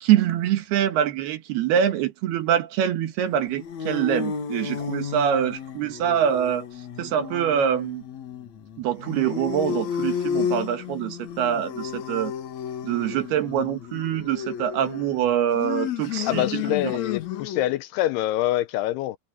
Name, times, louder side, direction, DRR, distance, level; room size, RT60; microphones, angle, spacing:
voice 1, 0.0-6.7 7.0-8.0 8.8-12.3 12.8-16.6, right 9 dB, 70° right, 3.4 m, -24 dB
sound 1, 3.3-17.8, left 8 dB, 55° left, 2.4 m, -32 dB
voice 2, 16.2-19.2, left 14 dB, 80° left, 2.5 m, -25 dB
omnidirectional pair, 4.9 m